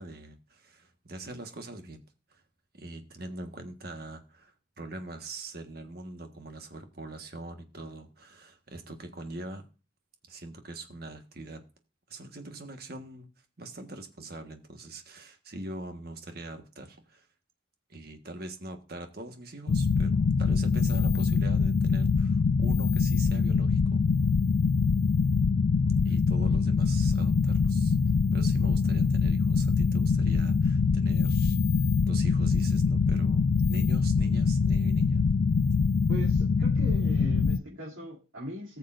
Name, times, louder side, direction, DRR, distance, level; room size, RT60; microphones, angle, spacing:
voice 1, 0.0-2.0 2.3-2.4 2.7-9.6 10.3-11.6 12.1-13.3 13.6-17.3 17.9-24.0 26.0-28.0 28.3-35.2, right 2 dB, 50° right, 1.5 m, -43 dB
sound 1, 19.7-37.6, left 5 dB, 60° left, 0.4 m, -24 dB
voice 2, 36.1-38.8, equal, 90° right, 2.8 m, -40 dB
19.0 x 6.8 x 2.6 m
head